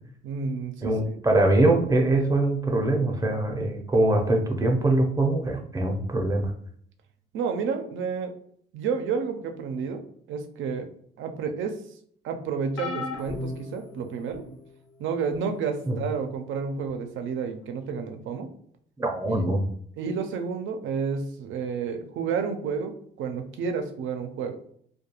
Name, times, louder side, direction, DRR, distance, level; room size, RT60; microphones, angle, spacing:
voice 1, 0.2-1.2 7.3-8.3 8.7-10.9 11.2-11.8 12.2-14.4 15.0-18.5 19.3-19.4 20.0-22.9 23.2-24.6, right 5 dB, 75° right, 6 dB, 0.4 m, -30 dB
voice 2, 0.8-6.5 15.9-16.0 19.0-19.6, right 2 dB, 15° right, 3 dB, 0.6 m, -23 dB
sound 1, 12.8-14.6 15.3-15.6 16.9-17.0, left 3 dB, 80° left, 0.6 m, -36 dB
2.3 x 2.2 x 2.9 m, 0.63 s
cardioid pair, 90°, 20 cm